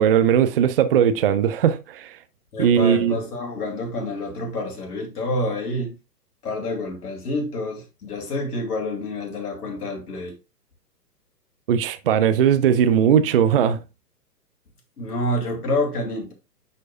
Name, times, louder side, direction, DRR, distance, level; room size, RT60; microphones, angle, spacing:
voice 1, 0.0-2.2 2.6-3.1 11.7-13.8, right 8 dB, 35° right, 0.5 m, -18 dB
voice 2, 2.5-5.9 6.4-10.3 15.0-16.3, left 1 dB, 65° left, 2.8 m, -28 dB
10.0 x 4.5 x 2.2 m
figure-of-eight pair, 120°, 49 cm